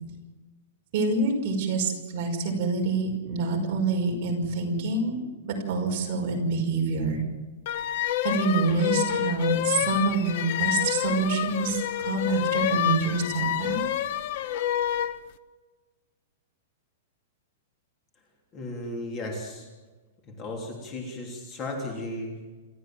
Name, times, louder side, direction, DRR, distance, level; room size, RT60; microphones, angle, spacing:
voice 1, 0.9-5.2 5.4-7.2 8.2-13.8, right 3 dB, 35° right, 0 dB, 5.4 m, -26 dB
sound 1, 7.7-15.2, left 12 dB, 40° left, 1.0 m, -28 dB
voice 2, 18.5-19.7 20.3-22.4, left 1 dB, 20° left, 1 dB, 3.3 m, -35 dB
28.0 x 13.5 x 7.7 m, 1.3 s
supercardioid pair, 180°, 0 cm